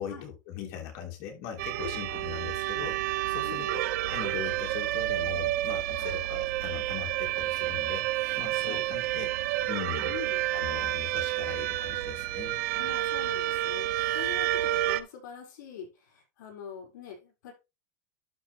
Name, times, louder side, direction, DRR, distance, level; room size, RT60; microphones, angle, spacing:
voice 1, 0.0-3.8 4.1-9.3 9.7-10.1 10.5-12.6, left 9 dB, 45° left, 3.1 m, -40 dB
sound 1, 1.6-15.0, right 15 dB, 60° right, 0.8 m, -30 dB
voice 2, 1.8-2.2 3.4-3.8 6.0-6.1 8.6-8.8 10.1-10.4 12.7-17.5, left 8 dB, 80° left, 5.6 m, -43 dB
12.0 x 4.5 x 3.4 m
supercardioid pair, 160°, 10 cm